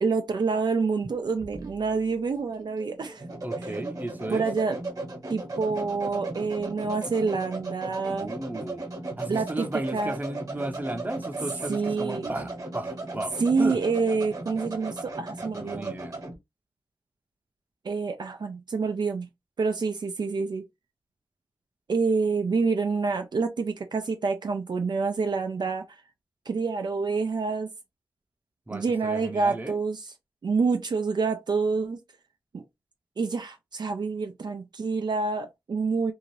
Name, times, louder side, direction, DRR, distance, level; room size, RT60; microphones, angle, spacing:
voice 1, 0.0-3.2 3.6-3.8 4.3-4.8 5.3-8.3 9.3-9.7 9.9-10.2 11.7-12.3 13.4-16.0 17.8-19.3 19.6-20.7 21.9-26.0 26.5-27.7 28.7-30.1 30.4-32.0 32.5-32.6 33.2-36.1, right 4 dB, 60° right, 0.4 m, -27 dB
sound 1, 1.0-16.4, right 2 dB, 45° right, 1.1 m, -37 dB
voice 2, 3.4-4.5 8.2-8.8 9.2-13.8 15.5-16.2 28.7-29.8, right 2 dB, 20° right, 0.7 m, -34 dB
2.7 x 2.4 x 3.1 m
wide cardioid pair, 85°, 8 cm